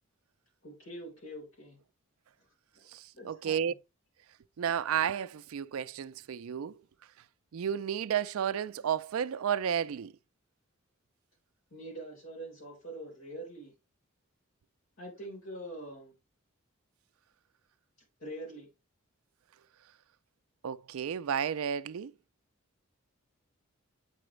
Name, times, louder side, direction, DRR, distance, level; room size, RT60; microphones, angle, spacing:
voice 1, 0.6-1.8 2.7-2.9 3.1-3.7 11.7-13.7 15.0-16.1 18.2-18.7, right 1 dB, 75° left, 4.1 m, -44 dB
voice 2, 2.9-3.7 4.6-6.8 7.5-10.1 20.6-22.1, right 8 dB, 85° right, 0.4 m, -32 dB
8.6 x 4.9 x 3.2 m
head